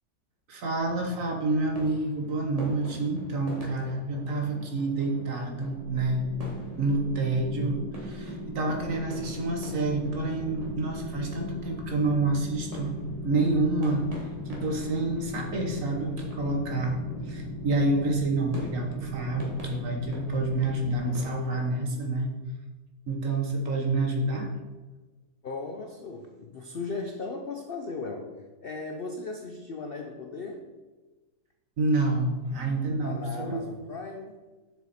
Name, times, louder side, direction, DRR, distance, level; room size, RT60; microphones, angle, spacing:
voice 1, 0.5-6.2 6.8-12.9 13.2-17.0 17.3-22.3 23.1-24.5 31.8-33.7, right 2 dB, 55° right, 2 dB, 1.5 m, -28 dB
sound 1, 1.8-21.6, equal, 25° right, 1.6 m, -45 dB
sound 2, 5.5-21.0, left 1 dB, 15° left, 0.7 m, -38 dB
voice 2, 25.4-28.3 28.6-30.6 33.0-34.4, left 3 dB, 60° left, 3 dB, 0.6 m, -37 dB
7.1 x 6.3 x 4.2 m, 1.2 s
omnidirectional pair, 1.7 m